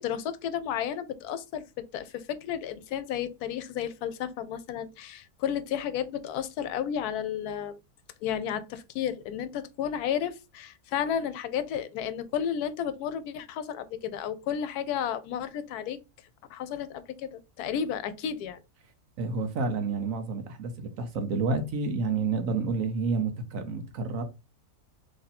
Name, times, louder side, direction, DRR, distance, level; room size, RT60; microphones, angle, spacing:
voice 1, 0.0-7.8 8.2-16.0 16.5-18.6, left 9 dB, 85° left, 1.1 m, -32 dB
voice 2, 19.2-24.2, right 4 dB, 65° right, 1.1 m, -29 dB
3.2 x 2.7 x 4.0 m
omnidirectional pair, 1.6 m